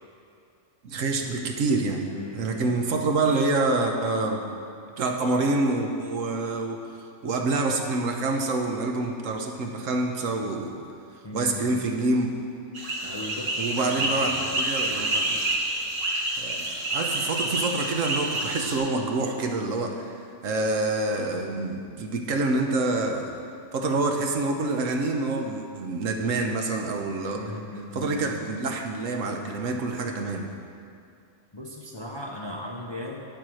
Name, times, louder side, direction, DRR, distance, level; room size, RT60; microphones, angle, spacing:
voice 1, 0.8-2.1 2.3-4.4 5.0-6.8 7.2-10.7 11.3-12.3 13.6-15.4 16.4-20.1 20.4-23.3 23.7-27.4 27.9-30.5, right 2 dB, 70° right, 3 dB, 1.3 m, -27 dB
voice 2, 2.1-3.1 11.2-11.9 13.0-14.6 27.3-28.4 31.5-33.3, left 1 dB, 25° left, -1 dB, 0.6 m, -38 dB
sound 1, 12.7-18.8, right 1 dB, 40° right, 1.3 m, -28 dB
9.1 x 7.4 x 6.2 m, 2.4 s
omnidirectional pair, 1.4 m